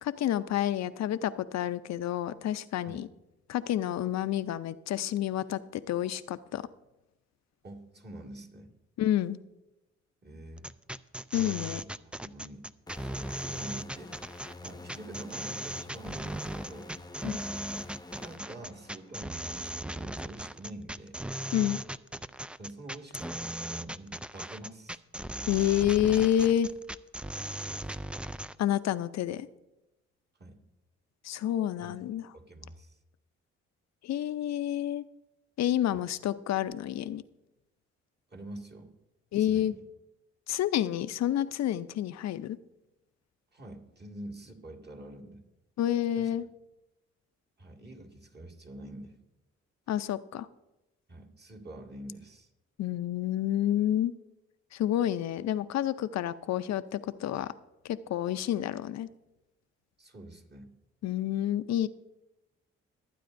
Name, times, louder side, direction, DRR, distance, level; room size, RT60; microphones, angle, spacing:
voice 1, 0.0-3.1 3.5-6.6 9.0-9.4 11.3-11.8 17.2-17.4 21.5-21.8 25.5-26.7 28.6-29.5 31.2-32.2 34.0-35.0 35.6-37.2 39.3-39.7 40.5-42.6 45.8-46.4 49.9-50.5 52.8-54.1 54.7-57.5 57.8-59.1 61.0-61.9, left 11 dB, 65° left, 13 dB, 0.6 m, -29 dB
voice 2, 7.6-8.7 10.2-10.7 11.8-11.9 12.2-12.7 13.0-14.3 14.6-17.0 18.2-21.2 22.6-25.0 26.4-26.5 27.2-28.2 30.4-30.6 31.8-32.0 32.3-33.0 35.9-36.1 38.3-38.9 39.4-39.8 43.5-45.4 46.2-46.5 47.6-49.2 51.1-52.5 60.0-60.7, right 1 dB, 35° right, 0 dB, 2.1 m, -46 dB
sound 1, 10.6-28.6, right 1 dB, 5° right, 0.3 m, -38 dB
sound 2, 12.9-19.4, left 3 dB, 15° left, 0.8 m, -48 dB
23.5 x 9.2 x 2.6 m, 0.99 s
supercardioid pair, 65°, 29 cm